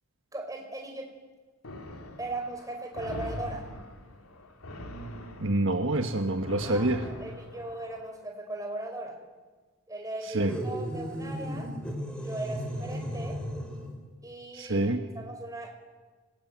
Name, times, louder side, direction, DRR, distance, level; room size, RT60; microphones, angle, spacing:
voice 1, 0.3-1.1 2.2-3.6 6.6-9.2 9.9-11.7 12.2-13.4 14.2-15.7, right 2 dB, 15° right, 2 dB, 4.5 m, -38 dB
sound 1, 1.6-8.1, left 1 dB, 85° left, 3.0 m, -43 dB
voice 2, 5.4-7.1 10.3-10.5 14.6-15.0, right 2 dB, 60° right, 5 dB, 1.4 m, -26 dB
sound 2, 10.5-14.0, equal, 5° left, 4.0 m, -35 dB
26.0 x 20.0 x 9.4 m, 1.4 s
head